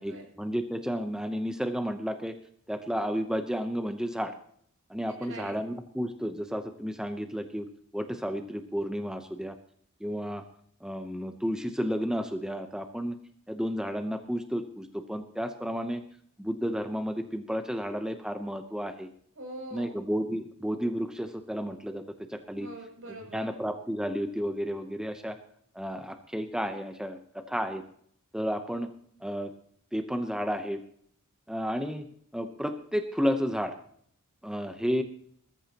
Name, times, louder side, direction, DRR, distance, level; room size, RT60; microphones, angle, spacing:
voice 1, 0.0-2.4 2.7-4.3 4.9-9.5 10.0-10.4 10.8-13.2 13.5-16.0 16.4-19.1 19.7-22.0 22.3-22.7 23.3-25.4 25.7-27.2 27.5-27.8 28.3-28.9 29.2-29.5 29.9-30.8 31.5-32.1 32.3-33.7 34.4-35.0, equal, 5° right, 7 dB, 0.8 m, -32 dB
voice 2, 5.1-5.6 19.4-20.0 22.6-23.6, right 1 dB, 70° right, 1 dB, 7.3 m, -43 dB
20.5 x 13.5 x 2.9 m, 0.63 s
head